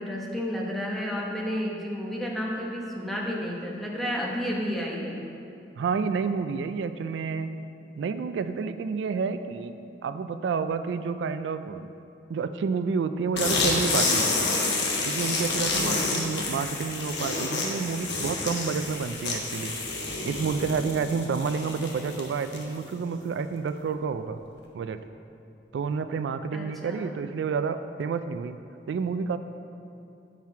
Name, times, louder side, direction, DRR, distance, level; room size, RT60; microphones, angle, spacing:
voice 1, 0.0-5.2 15.8-16.3 26.5-27.2, equal, ahead, -3 dB, 0.9 m, -31 dB
voice 2, 5.8-7.5 8.0-11.9 12.3-14.3 15.1-19.7 20.2-24.4 24.7-25.0 25.7-28.6 28.9-29.4, right 5 dB, 85° right, 11 dB, 0.3 m, -29 dB
sound 1, 13.3-22.8, left 3 dB, 70° left, 1.1 m, -29 dB
7.4 x 6.0 x 4.5 m, 2.8 s
head